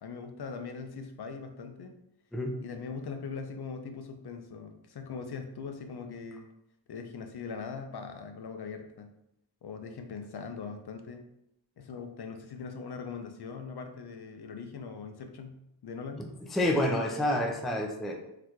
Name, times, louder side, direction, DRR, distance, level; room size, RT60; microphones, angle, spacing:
voice 1, 0.0-2.0 2.6-6.5 6.9-9.1 9.6-11.3 11.8-16.3, left 5 dB, 60° left, 6 dB, 0.5 m, -41 dB
voice 2, 16.5-18.1, left 1 dB, ahead, 2 dB, 0.3 m, -28 dB
3.9 x 2.2 x 3.0 m, 0.81 s
wide cardioid pair, 90°, 45 cm